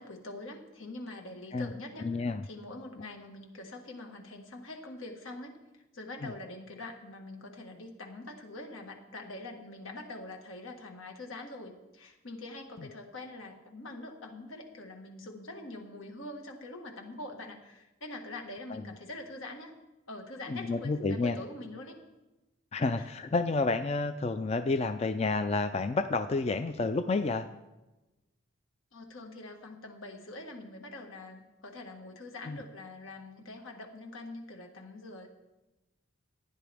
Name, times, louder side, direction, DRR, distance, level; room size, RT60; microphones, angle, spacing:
voice 1, 0.0-5.6 5.9-19.7 20.1-21.9 23.0-23.1 28.9-35.3, left 2 dB, 85° left, 2 dB, 1.7 m, -44 dB
voice 2, 2.0-2.4 6.2-6.3 18.7-18.8 20.5-21.4 22.7-27.5 32.5-32.6, left 3 dB, 30° left, 9 dB, 0.3 m, -30 dB
15.5 x 10.0 x 3.5 m, 1.0 s
head